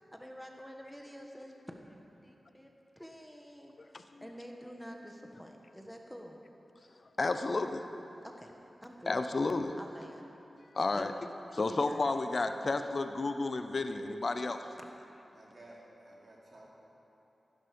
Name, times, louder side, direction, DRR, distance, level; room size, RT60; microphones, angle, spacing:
voice 1, 0.0-3.7 4.2-6.4 8.2-8.5 8.8-9.2 9.8-10.2 10.9-11.1 11.6-12.3 14.8-14.9, equal, ahead, 1 dB, 1.4 m, -48 dB
voice 2, 3.9-4.2 7.2-7.8 9.1-9.8 10.7-11.1 11.5-14.7, left 3 dB, 50° left, 8 dB, 0.7 m, -32 dB
voice 3, 15.3-16.7, right 1 dB, 55° right, -4 dB, 3.4 m, -54 dB
16.0 x 11.5 x 5.3 m, 2.9 s
cardioid pair, 60°, 0 cm